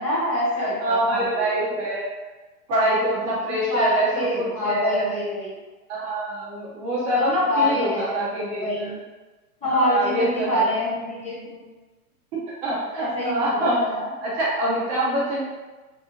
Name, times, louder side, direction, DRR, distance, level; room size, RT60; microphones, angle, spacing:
voice 1, 0.0-1.5 3.5-5.5 7.5-8.3 8.6-9.0 9.6-11.7 13.0-14.1, left 1 dB, 15° left, -9 dB, 0.7 m, -26 dB
voice 2, 0.6-2.0 2.7-4.1 4.4-5.1 5.9-8.9 9.7-10.6 12.6-13.8 14.2-15.4, right 1 dB, 30° right, -7 dB, 0.6 m, -24 dB
2.7 x 2.3 x 2.8 m, 1.2 s
hypercardioid pair, 120°, 46 cm